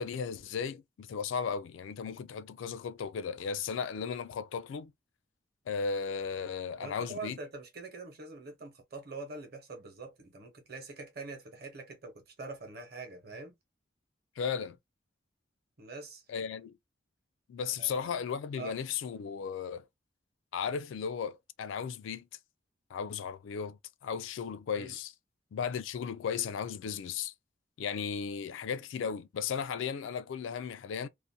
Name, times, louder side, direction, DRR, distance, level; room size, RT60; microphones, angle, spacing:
voice 1, 0.0-4.9 5.7-7.4 14.4-14.8 16.3-16.7 17.5-19.9 20.5-22.2 22.9-25.1 25.5-27.3 27.8-31.1, left 6 dB, 75° left, 0.3 m, -35 dB
voice 2, 6.8-13.5 15.8-16.2 17.8-18.1 18.6-18.7 24.7-25.0, right 3 dB, 50° right, 0.9 m, -44 dB
2.4 x 2.1 x 2.7 m
head